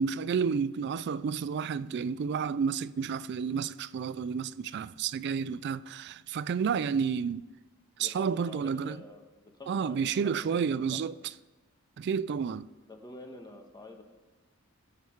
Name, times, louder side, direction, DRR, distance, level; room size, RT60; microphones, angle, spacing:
voice 1, 0.0-7.5 8.0-9.0 9.7-11.2 12.0-12.7, right 6 dB, 55° right, 0.3 m, -30 dB
voice 2, 8.0-11.2 12.9-14.0, left 2 dB, 20° left, 1.4 m, -48 dB
20.0 x 7.5 x 4.6 m
head